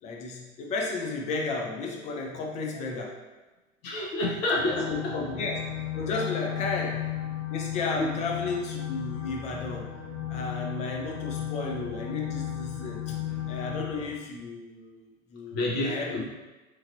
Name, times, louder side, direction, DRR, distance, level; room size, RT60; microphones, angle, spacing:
voice 1, 0.0-3.2 4.7-5.6 5.9-7.0 7.5-9.9 10.3-13.1 13.5-15.6 15.8-16.2, left 3 dB, 20° left, 0 dB, 0.3 m, -33 dB
voice 2, 3.8-5.2 6.0-6.2 8.0-8.1 13.0-13.4 15.5-16.2, left 1 dB, 50° left, -2 dB, 0.8 m, -29 dB
sound 1, 4.6-14.1, left 11 dB, 85° left, 1.1 m, -35 dB
3.0 x 2.8 x 2.5 m, 1.1 s
figure-of-eight pair, 85°, 39 cm